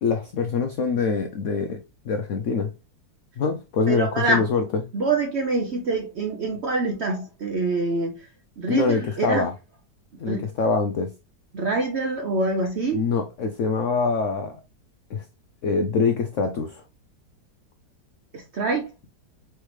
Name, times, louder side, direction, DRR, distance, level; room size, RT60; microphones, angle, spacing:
voice 1, 0.0-2.7 3.4-4.8 8.7-9.5 10.2-11.1 12.9-14.6 15.1-15.2 15.6-16.8, left 4 dB, 85° left, 0.6 m, -24 dB
voice 2, 3.9-4.5 4.9-8.2 8.6-9.5 10.3-10.4 11.5-13.0 18.3-18.9, right 3 dB, 65° right, 0.6 m, -25 dB
4.5 x 3.3 x 3.1 m
omnidirectional pair, 1.9 m